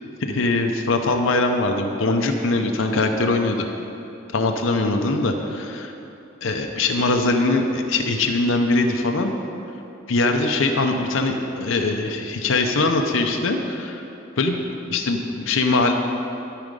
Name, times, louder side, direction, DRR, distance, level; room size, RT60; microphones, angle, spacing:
voice 1, 0.2-3.7 4.3-5.9 6.4-9.4 10.1-14.0 14.4-14.6 14.9-15.9, left 2 dB, 90° left, 4 dB, 0.7 m, -22 dB
13.0 x 5.0 x 5.3 m, 2.8 s
head